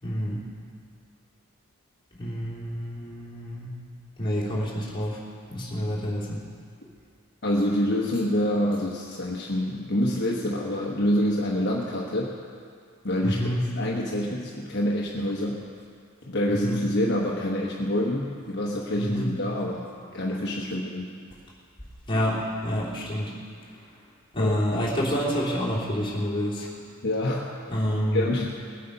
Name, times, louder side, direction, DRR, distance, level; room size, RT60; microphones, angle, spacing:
voice 1, 0.0-0.4 2.2-3.7 4.2-5.2 5.5-6.4 13.2-13.6 16.5-16.8 18.9-19.3 22.1-23.4 24.3-26.7 27.7-28.3, equal, 20° left, -7 dB, 3.1 m, -28 dB
voice 2, 7.4-12.3 13.0-13.4 13.8-15.6 16.2-21.1 24.4-24.5 27.0-27.6 28.1-28.5, left 1 dB, 55° left, -3 dB, 1.2 m, -26 dB
20.0 x 8.5 x 5.4 m, 2.3 s
head